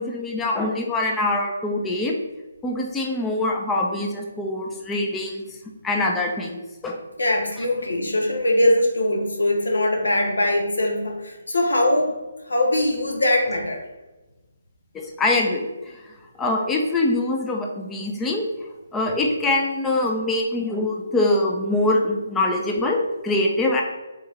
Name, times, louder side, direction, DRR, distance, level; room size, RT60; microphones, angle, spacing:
voice 1, 0.0-2.1 2.6-5.4 5.8-7.0 14.9-15.9 16.4-18.5 18.9-23.8, left 2 dB, 10° left, 0 dB, 0.4 m, -24 dB
voice 2, 7.2-12.1 12.5-13.8, left 1 dB, 85° left, 2 dB, 0.8 m, -21 dB
3.5 x 3.0 x 3.3 m, 1.1 s
figure-of-eight pair, 150°, 0 cm